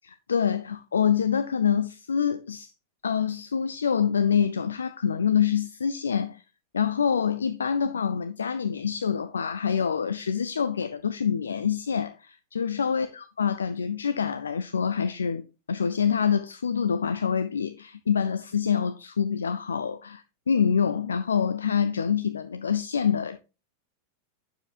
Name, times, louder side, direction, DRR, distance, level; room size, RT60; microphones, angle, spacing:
voice 1, 0.3-2.7 3.0-6.4 6.7-15.4 15.7-23.5, left 7 dB, 70° left, 0.4 m, -26 dB
8.9 x 7.1 x 2.4 m
figure-of-eight pair, 90°, 0 cm